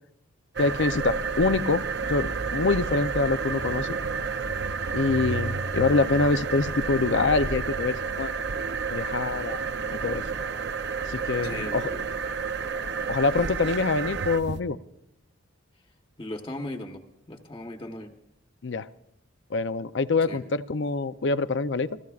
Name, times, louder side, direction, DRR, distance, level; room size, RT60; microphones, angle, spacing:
voice 1, 0.6-1.8 2.1-4.0 4.9-8.3 8.9-9.6 9.9-10.2 11.0-11.9 13.1-14.8 18.6-18.9 19.5-22.0, left 3 dB, 55° left, 13 dB, 0.5 m, -25 dB
sound 1, 0.6-14.6, right 5 dB, 55° right, 0.7 m, -30 dB
sound 2, 0.8-11.9, equal, 70° right, 5.4 m, -48 dB
voice 2, 11.4-12.0 16.2-17.0 17.3-18.1 20.3-20.4, left 1 dB, 25° left, 4 dB, 1.0 m, -37 dB
28.0 x 15.5 x 2.4 m, 0.78 s
head